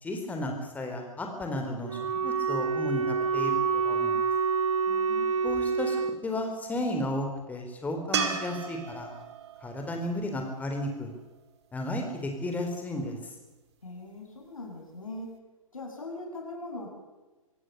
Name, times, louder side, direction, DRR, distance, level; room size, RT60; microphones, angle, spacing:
voice 1, 0.0-4.1 5.4-9.1 9.6-11.1 11.7-13.2, left 1 dB, 10° left, 3 dB, 4.0 m, -33 dB
Wind instrument woodwind instrument, 1.8-6.2, right 5 dB, 65° right, 1.8 m, -27 dB
voice 2, 4.9-5.3 13.8-15.3 15.7-16.9, left 2 dB, 70° left, 2 dB, 7.5 m, -40 dB
sound 1, 8.1-11.4 14.6-14.7, right 6 dB, 50° right, 2.7 m, -35 dB
24.5 x 17.0 x 6.8 m, 1.2 s
figure-of-eight pair, 120°, 18 cm